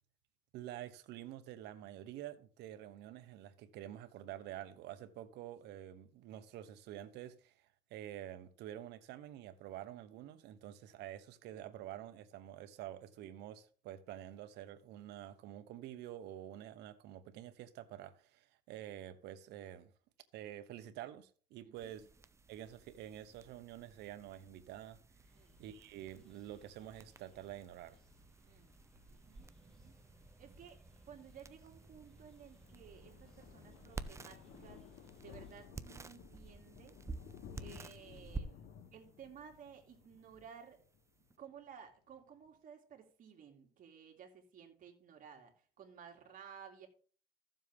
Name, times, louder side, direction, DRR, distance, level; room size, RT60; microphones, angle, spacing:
voice 1, 0.5-7.5 7.9-19.9 20.3-22.1 22.5-25.0 25.6-28.0, right 12 dB, 85° right, 1.1 m, -48 dB
voice 2, 21.6-21.9 25.3-25.6 28.4-28.7 29.0-29.9 30.4-30.8 31.1-34.8 35.2-37.0 37.5-40.8 41.4-46.9, right 7 dB, 55° right, 2.8 m, -56 dB
sound 1, 21.8-41.4, right 3 dB, 15° right, 0.6 m, -52 dB
sound 2, 25.2-35.7, left 2 dB, 5° left, 3.1 m, -68 dB
Thunder, 31.9-41.3 41.6-41.9 42.2-42.3 42.5-42.6, left 8 dB, 75° left, 1.2 m, -56 dB
14.0 x 7.4 x 3.6 m
cardioid pair, 110°, 17 cm